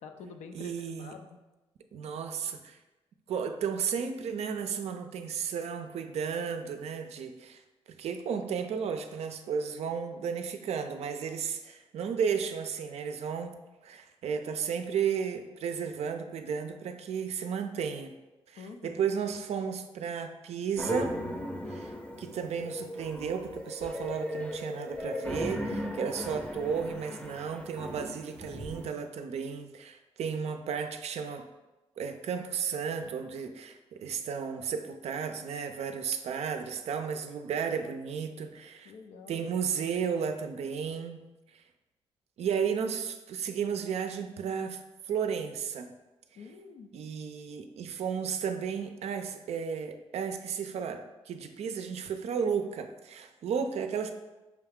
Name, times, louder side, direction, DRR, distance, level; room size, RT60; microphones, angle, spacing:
voice 1, 0.0-1.4 18.6-19.1 38.8-39.4 46.3-46.9, left 4 dB, 80° left, 5 dB, 0.5 m, -47 dB
voice 2, 0.5-1.2 1.9-2.8 3.3-7.6 7.9-18.1 18.5-21.2 21.7-21.9 22.2-31.5 32.0-38.9 39.3-41.3 42.4-44.8 45.1-46.0 46.9-54.1, right 7 dB, 70° right, 7 dB, 0.4 m, -33 dB
sound 1, 20.8-28.9, left 1 dB, 10° left, 0.6 m, -37 dB
5.8 x 2.3 x 3.5 m, 1.1 s
supercardioid pair, 60°, 11 cm